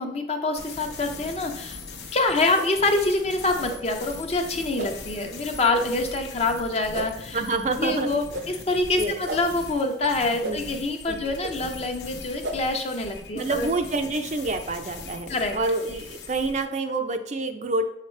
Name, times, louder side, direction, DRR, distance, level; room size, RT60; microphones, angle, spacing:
voice 1, 0.0-1.8 2.1-7.4 7.8-13.7 15.3-15.6, left 2 dB, 35° left, 4 dB, 0.7 m, -26 dB
sound 1, 0.6-16.6, left 4 dB, 75° left, 0.9 m, -41 dB
sound 2, 2.5-2.7 3.6-3.8 4.7-4.9 5.7-5.9 6.9-7.1 8.3-8.5 9.2-9.4 10.4-10.6 11.4-11.5 12.4-12.6, right 1 dB, 70° right, 0.7 m, -32 dB
voice 2, 7.3-8.2 9.0-9.3 10.4-10.6 11.0-11.4 13.3-17.8, right 3 dB, 40° right, 6 dB, 0.5 m, -27 dB
7.0 x 4.9 x 3.2 m, 0.81 s
head